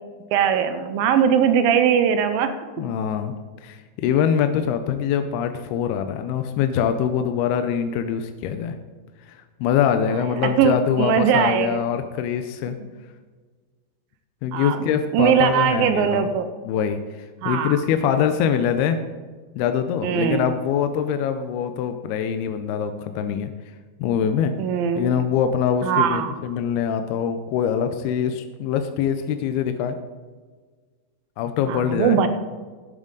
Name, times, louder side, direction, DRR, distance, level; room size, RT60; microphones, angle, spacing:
voice 1, 0.3-2.6 10.4-11.8 14.5-14.9 15.1-16.5 17.4-17.8 20.0-20.5 24.6-25.1 25.8-26.3 31.7-32.3, right 8 dB, 75° right, 9 dB, 2.3 m, -20 dB
voice 2, 2.8-3.3 3.6-8.7 9.3-12.8 14.4-16.3 16.6-17.0 17.5-19.0 19.6-23.5 24.0-24.5 24.9-30.0 31.4-32.2, left 8 dB, 85° left, 7 dB, 2.6 m, -23 dB
12.0 x 11.0 x 3.9 m, 1.5 s
omnidirectional pair, 4.5 m